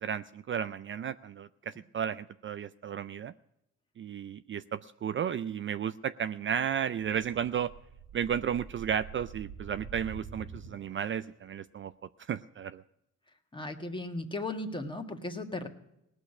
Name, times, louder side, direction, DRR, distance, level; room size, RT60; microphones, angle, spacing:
voice 1, 0.0-3.3 4.0-7.7 8.1-11.9 12.3-12.8, right 8 dB, 40° right, 12 dB, 0.4 m, -33 dB
sound 1, 7.5-11.3, right 6 dB, 55° right, 2.0 m, -47 dB
voice 2, 13.5-15.7, left 2 dB, 15° left, 5 dB, 1.7 m, -36 dB
18.5 x 6.3 x 9.8 m, 0.84 s
cardioid pair, 90°, 30 cm